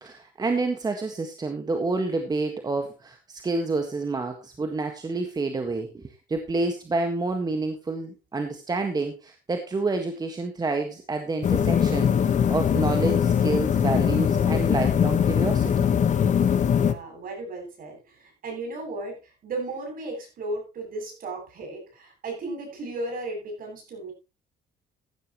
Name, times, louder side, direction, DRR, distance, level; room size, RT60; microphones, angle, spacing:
voice 1, 0.0-15.9, right 3 dB, 25° right, 5 dB, 1.7 m, -29 dB
sound 1, 11.4-16.9, left 8 dB, 45° left, 1.3 m, -22 dB
voice 2, 16.7-24.1, right 2 dB, 55° right, 2 dB, 7.9 m, -35 dB
15.5 x 11.0 x 3.1 m, 0.26 s
cardioid pair, 125°, 17 cm